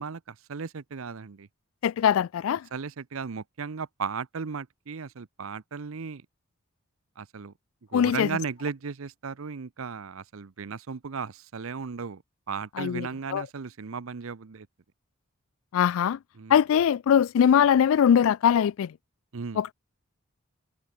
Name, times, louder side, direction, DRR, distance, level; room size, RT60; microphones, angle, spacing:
voice 1, 0.0-1.5 2.7-6.2 7.2-7.5 7.9-12.2 12.5-14.7 16.4-16.6 19.3-19.6, right 5 dB, 70° right, 0.6 m, -36 dB
voice 2, 1.8-2.7 7.9-8.3 12.8-13.5 15.7-16.2 16.5-18.9 19.6-19.7, left 8 dB, 70° left, 0.3 m, -22 dB
head